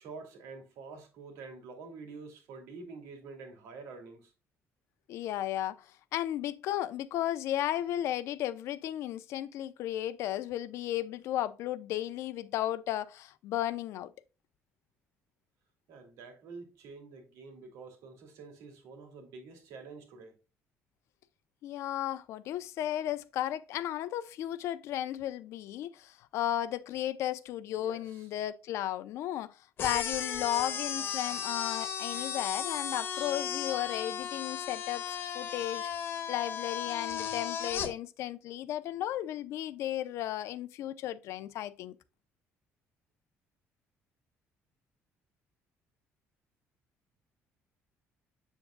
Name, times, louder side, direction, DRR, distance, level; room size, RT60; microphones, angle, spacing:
voice 1, 0.0-4.3 15.9-20.4 27.8-28.3, right 4 dB, 85° right, 2.7 m, -48 dB
voice 2, 5.1-14.1 21.6-42.0, left 12 dB, 70° left, 0.7 m, -34 dB
sound 1, 29.8-37.9, left 8 dB, 50° left, 1.2 m, -35 dB
7.7 x 7.3 x 2.3 m
cardioid pair, 160°, 5 cm